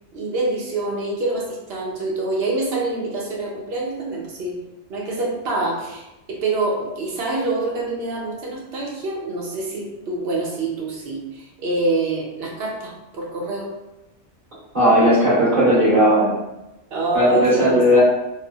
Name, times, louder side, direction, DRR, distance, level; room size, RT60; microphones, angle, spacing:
voice 1, 0.1-4.6 4.9-13.7 16.9-18.0, right 2 dB, 60° right, -2 dB, 0.8 m, -26 dB
voice 2, 14.7-16.3 17.1-18.0, equal, 35° right, -12 dB, 1.7 m, -16 dB
3.3 x 2.0 x 2.3 m, 0.96 s
omnidirectional pair, 1.3 m